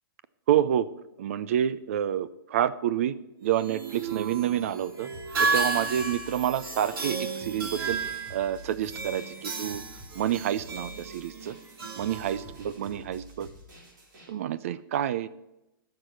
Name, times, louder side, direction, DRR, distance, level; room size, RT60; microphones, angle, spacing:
voice 1, 0.5-0.9 1.2-3.1 3.4-5.1 5.4-8.0 8.3-9.8 10.2-11.6 12.0-13.5 14.3-15.3, right 10 dB, 35° right, 16 dB, 0.4 m, -28 dB
sound 1, 3.4-13.0, right 4 dB, 80° right, 2.6 m, -33 dB
sound 2, 5.1-14.3, equal, 55° right, 4.0 m, -49 dB
12.0 x 6.7 x 6.0 m, 0.93 s
hypercardioid pair, 170°, 12 cm